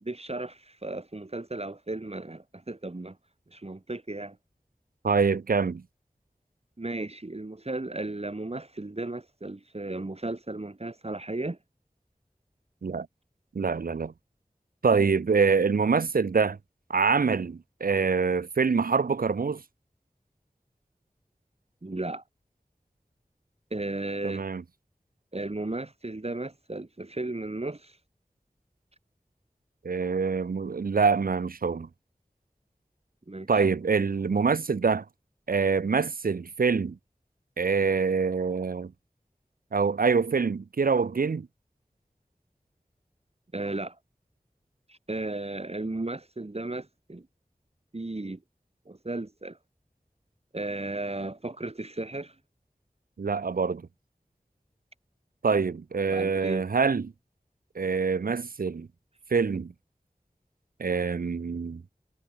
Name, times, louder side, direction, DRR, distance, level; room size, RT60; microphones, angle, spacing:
voice 1, 0.0-3.2 3.5-4.4 6.8-11.6 21.8-22.2 23.7-24.4 25.3-28.0 33.3-33.5 43.5-44.0 44.9-47.3 47.9-48.4 48.8-49.6 50.5-52.3 56.1-56.6, right 2 dB, 45° right, 1.6 m, -35 dB
voice 2, 5.0-5.8 12.8-13.1 13.5-14.1 14.8-16.6 16.9-19.6 24.2-24.6 29.8-31.9 33.5-35.0 35.5-37.0 37.6-38.9 39.7-41.5 53.2-53.8 55.4-57.1 57.8-58.9 59.3-59.7 60.8-61.8, right 5 dB, 85° right, 0.5 m, -25 dB
wide cardioid pair, 45°, 15 cm